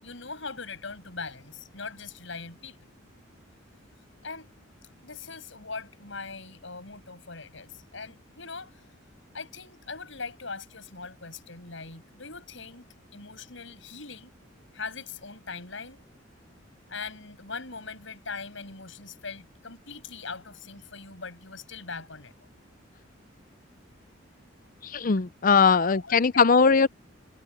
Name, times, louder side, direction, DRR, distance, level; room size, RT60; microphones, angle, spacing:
voice 1, 0.0-2.9 4.2-4.5 4.8-8.9 9.3-14.3 14.7-16.0 16.9-22.5 25.0-25.1 25.7-26.2, left 4 dB, 70° left, 7.3 m, -41 dB
voice 2, 24.8-26.9, left 5 dB, 45° left, 0.6 m, -20 dB
head